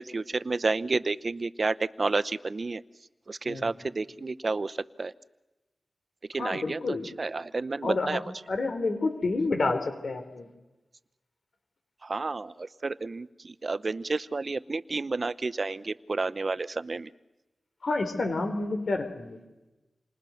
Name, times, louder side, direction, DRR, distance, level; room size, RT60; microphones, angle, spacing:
voice 1, 0.0-2.8 3.3-5.1 6.3-8.2 12.0-17.1, right 3 dB, 50° right, 14 dB, 0.9 m, -31 dB
voice 2, 3.5-3.8 6.4-7.0 7.8-8.2 8.5-10.5 17.8-19.4, left 3 dB, 70° left, 7 dB, 4.0 m, -29 dB
29.0 x 26.0 x 6.5 m, 1.1 s
cardioid pair, 50°, 0 cm